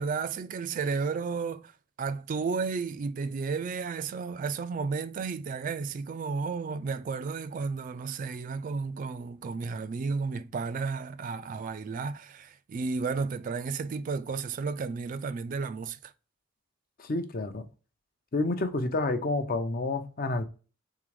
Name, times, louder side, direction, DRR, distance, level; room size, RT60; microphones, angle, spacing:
voice 1, 0.0-1.7 2.0-16.1, right 4 dB, 40° right, 0.3 m, -33 dB
voice 2, 17.0-17.6 18.3-20.4, left 2 dB, 45° left, 0.6 m, -29 dB
3.7 x 3.4 x 3.2 m
head